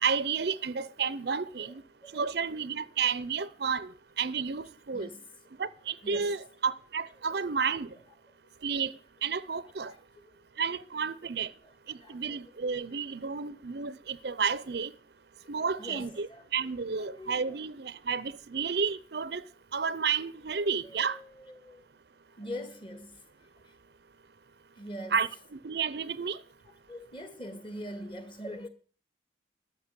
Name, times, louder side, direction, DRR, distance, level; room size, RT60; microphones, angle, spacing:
voice 1, 0.0-1.8 2.1-5.1 5.6-7.9 8.6-8.9 9.2-9.9 10.6-11.5 11.9-14.9 15.5-19.4 19.7-21.2 25.1-26.4, right 6 dB, 60° right, 0.6 m, -31 dB
voice 2, 4.9-5.2 5.5-5.6 6.0-6.3 7.2-7.3 8.3-8.4 9.8-10.4 10.7-11.3 11.6-12.5 12.8-13.3 14.7-14.8 15.4-16.4 16.9-17.6 20.6-21.9 22.3-23.8 24.7-25.2 26.7-28.7, equal, 30° left, 1.9 m, -44 dB
12.5 x 6.7 x 9.6 m
head